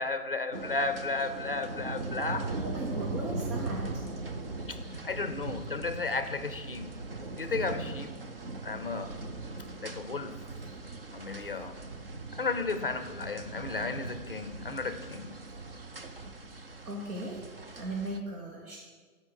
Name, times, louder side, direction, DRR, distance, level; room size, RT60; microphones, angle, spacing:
voice 1, 0.0-2.5 4.7-4.8 5.0-7.0 7.4-8.1 8.6-9.2 9.8-10.4 11.1-11.7 12.4-15.4, left 3 dB, 40° left, 10 dB, 0.5 m, -33 dB
sound 1, 0.5-18.2, right 2 dB, 40° right, 0.5 m, -39 dB
voice 2, 2.6-4.0 16.8-17.4 17.8-18.8, right 1 dB, 70° right, -3 dB, 2.5 m, -37 dB
16.5 x 5.6 x 6.2 m, 1.5 s
hypercardioid pair, 180°, 47 cm